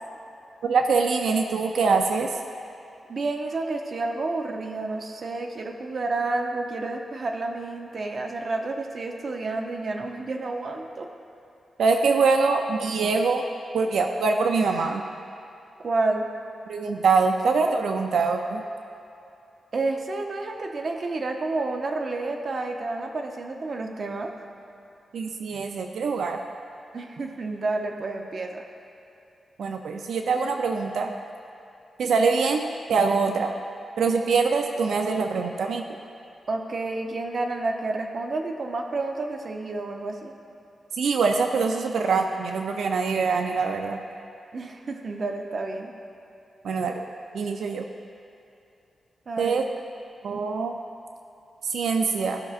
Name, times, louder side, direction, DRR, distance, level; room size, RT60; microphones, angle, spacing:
voice 1, 0.6-2.3 11.8-13.4 13.7-15.0 16.7-18.6 25.1-26.4 29.6-31.1 32.0-32.6 32.9-33.5 34.0-35.8 41.0-44.0 46.6-47.0 47.3-47.8 49.4-49.6 50.2-50.8 51.6-52.4, right 4 dB, 85° right, 4 dB, 0.4 m, -24 dB
voice 2, 3.1-11.1 15.8-16.3 19.7-24.3 26.9-28.6 36.5-40.3 44.5-45.9 49.3-49.5, right 3 dB, 45° right, 3 dB, 0.7 m, -30 dB
15.5 x 5.9 x 2.5 m, 2.8 s
wide cardioid pair, 150°, 0 cm